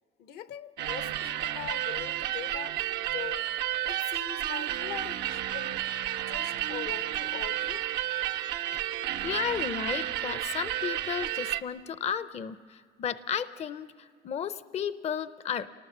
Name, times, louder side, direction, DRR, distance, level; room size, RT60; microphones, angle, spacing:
voice 1, 0.2-3.5 3.8-7.8, left 11 dB, 75° left, 0.8 m, -42 dB
sound 1, 0.8-11.6, right 13 dB, 80° right, 0.7 m, -32 dB
voice 2, 9.2-15.7, left 8 dB, 40° left, 0.5 m, -33 dB
27.5 x 19.0 x 7.3 m
cardioid pair, 110°, 17 cm